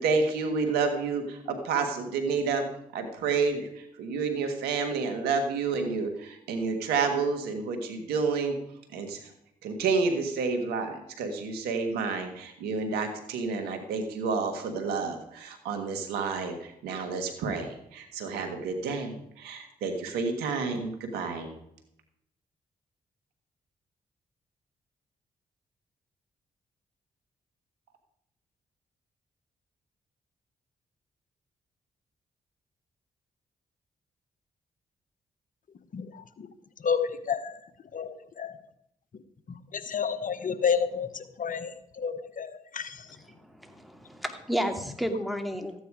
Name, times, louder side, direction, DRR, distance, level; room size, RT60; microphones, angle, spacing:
voice 1, 0.0-2.7 2.9-8.5 8.9-9.3 9.6-21.5, right 4 dB, 90° right, 5 dB, 1.8 m, -30 dB
voice 2, 35.9-36.5 36.8-37.6 37.9-38.5 39.7-41.7 42.0-43.1, left 6 dB, 55° left, 13 dB, 1.1 m, -30 dB
voice 3, 43.1-45.7, equal, ahead, 5 dB, 2.5 m, -32 dB
14.0 x 9.2 x 4.9 m, 0.78 s
supercardioid pair, 45°, 16 cm